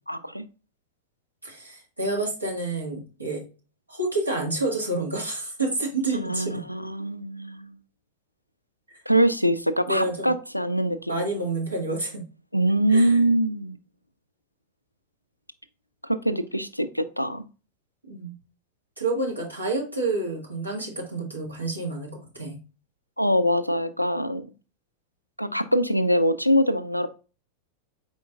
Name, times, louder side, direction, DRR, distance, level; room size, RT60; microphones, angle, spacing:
voice 1, 0.1-0.4 6.1-7.7 9.1-11.2 12.5-13.8 16.0-17.4 23.2-24.5 25.4-27.1, right 1 dB, 90° left, 0.3 m, -23 dB
voice 2, 1.4-3.4 3.9-6.6 9.9-10.3 11.1-12.2 12.9-13.2 18.0-18.3 19.0-22.6, right 2 dB, 80° right, 1.4 m, -29 dB
4.5 x 4.3 x 2.3 m
figure-of-eight pair, 90°, 0 cm